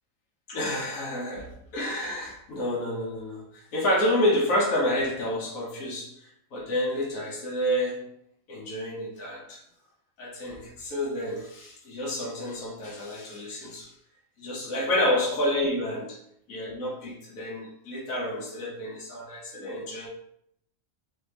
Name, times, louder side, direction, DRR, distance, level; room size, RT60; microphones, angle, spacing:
voice 1, 0.5-8.1 8.5-9.6 10.2-13.9 14.4-16.1 16.5-20.1, left 1 dB, 70° left, -5 dB, 1.4 m, -29 dB
4.0 x 2.9 x 3.3 m, 0.74 s
omnidirectional pair, 1.5 m